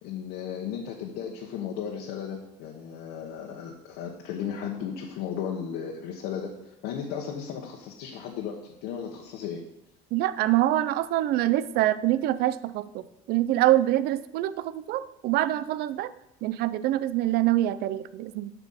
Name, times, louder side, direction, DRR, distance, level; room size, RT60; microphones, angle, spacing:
voice 1, 0.0-9.6, left 8 dB, 75° left, -1 dB, 1.3 m, -35 dB
voice 2, 10.1-16.1 16.4-18.5, right 14 dB, 60° right, 15 dB, 0.5 m, -25 dB
8.2 x 6.0 x 5.8 m, 0.86 s
cardioid pair, 125°, 18 cm